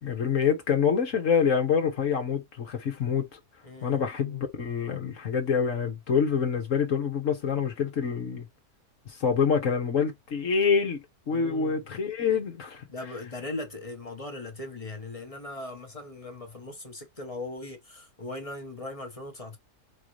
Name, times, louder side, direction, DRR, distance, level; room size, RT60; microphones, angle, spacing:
voice 1, 0.0-3.3 3.8-8.5 9.1-12.8, left 6 dB, 55° left, 1.3 m, -26 dB
voice 2, 3.6-4.0 11.3-11.8 12.9-19.6, left 2 dB, 25° left, 1.0 m, -39 dB
4.4 x 3.8 x 3.2 m
omnidirectional pair, 1.7 m